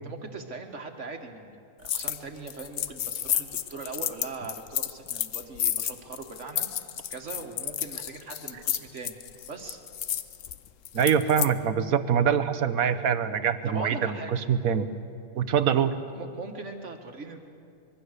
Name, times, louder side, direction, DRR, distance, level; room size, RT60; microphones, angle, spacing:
voice 1, 0.0-9.2 9.5-9.8 13.7-14.5 15.7-17.4, right 4 dB, 55° right, 4 dB, 1.9 m, -40 dB
sound 1, 1.8-2.2 2.5-11.5, left 10 dB, 65° left, 1.0 m, -31 dB
voice 2, 10.9-14.9 15.4-15.9, right 7 dB, 70° right, 11 dB, 1.4 m, -24 dB
25.0 x 22.0 x 6.7 m, 2.5 s
omnidirectional pair, 1.6 m